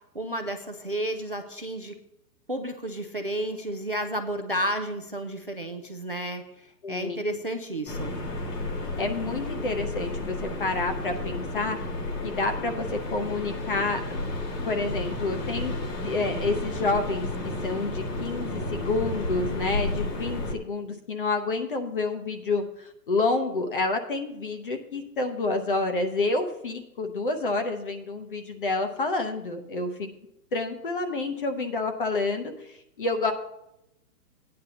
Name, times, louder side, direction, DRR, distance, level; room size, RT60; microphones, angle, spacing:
voice 1, 0.1-2.0 2.5-8.1, right 1 dB, 35° right, 7 dB, 0.4 m, -32 dB
voice 2, 6.8-7.2 9.0-11.8 12.2-12.9 13.1-14.2 14.6-15.7 16.0-17.3 17.6-30.1 30.5-33.3, left 3 dB, 35° left, 7 dB, 0.9 m, -29 dB
sound 1, 7.9-20.5, left 2 dB, 70° left, 2.7 m, -32 dB
14.5 x 9.6 x 2.8 m, 0.83 s
hypercardioid pair, 175°, 49 cm